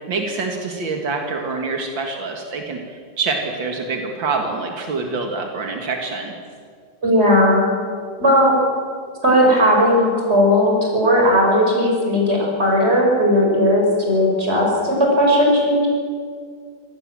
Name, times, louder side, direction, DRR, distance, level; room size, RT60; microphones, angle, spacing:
voice 1, 0.1-6.3, right 4 dB, 85° right, 3 dB, 2.6 m, -26 dB
voice 2, 7.0-7.7 8.2-8.5 9.2-15.9, equal, 35° right, -1 dB, 6.1 m, -16 dB
25.5 x 18.0 x 7.6 m, 2.1 s
omnidirectional pair, 2.0 m